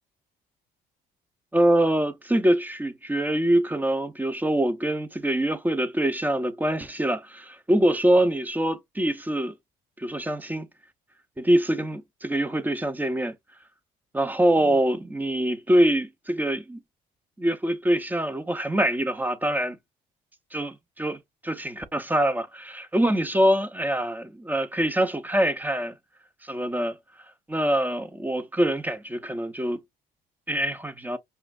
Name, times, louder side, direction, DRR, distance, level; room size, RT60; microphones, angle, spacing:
voice 1, 1.5-9.5 10.0-10.7 11.4-13.3 14.1-16.8 17.4-19.8 20.5-25.9 26.4-26.9 27.5-29.8 30.5-31.2, right 1 dB, 10° right, 0.6 m, -24 dB
5.5 x 2.5 x 2.4 m
cardioid pair, 110°, 17 cm